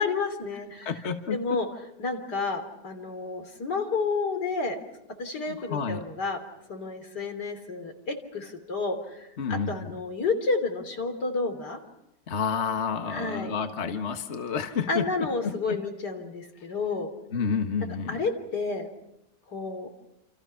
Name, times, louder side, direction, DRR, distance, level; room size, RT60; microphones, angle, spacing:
voice 1, 0.0-0.9 1.3-1.7 2.0-4.8 5.2-6.4 6.7-11.8 13.1-13.5 14.9-17.1 18.1-18.9 19.5-19.9, left 4 dB, 75° left, 6 dB, 3.8 m, -30 dB
voice 2, 0.8-1.4 5.5-6.0 9.4-9.9 12.3-15.1 15.4-15.8 17.3-18.2, left 6 dB, 45° left, 6 dB, 1.6 m, -30 dB
29.0 x 28.0 x 5.8 m, 0.83 s
omnidirectional pair, 1.8 m